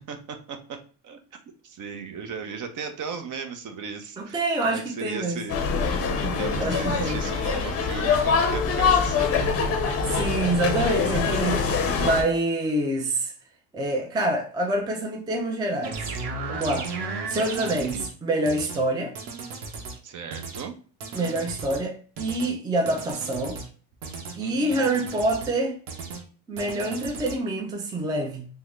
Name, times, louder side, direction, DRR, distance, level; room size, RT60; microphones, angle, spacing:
voice 1, 0.1-0.8 1.0-1.2 1.6-5.6 6.4-9.5 17.7-18.1 20.0-20.8 24.4-24.9, right 5 dB, 50° right, 0.7 m, -36 dB
voice 2, 4.2-5.4 6.6-7.2 10.0-13.3 13.7-16.1 16.5-16.9 17.3-19.2 21.1-23.6 24.4-25.8 26.5-28.5, right 2 dB, 10° right, 0.4 m, -26 dB
sound 1, 5.5-12.2, left 5 dB, 35° left, 0.6 m, -24 dB
sound 2, 15.8-18.1 18.5-18.8 19.1-20.0 20.3-20.7 21.0-21.8 22.2-22.5 22.9-23.7 24.0-24.4 24.7-25.5 25.9-26.2 26.6-27.4, right 4 dB, 75° right, 0.9 m, -35 dB
3.6 x 2.1 x 3.0 m
cardioid pair, 125°, 41 cm